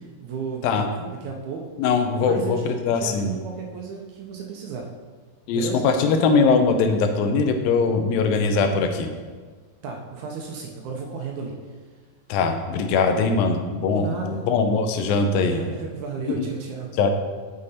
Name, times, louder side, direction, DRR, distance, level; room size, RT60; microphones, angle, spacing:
voice 1, 0.0-0.7 1.0-1.7 2.2-4.9 5.5-5.9 9.8-11.6 13.9-14.4 15.5-16.9, right 5 dB, 70° right, 1 dB, 1.9 m, -34 dB
voice 2, 1.8-3.3 5.5-9.1 12.3-15.6 16.3-16.5 17.0-17.1, left 4 dB, 85° left, 6 dB, 2.5 m, -21 dB
7.4 x 6.5 x 4.2 m, 1.4 s
omnidirectional pair, 4.0 m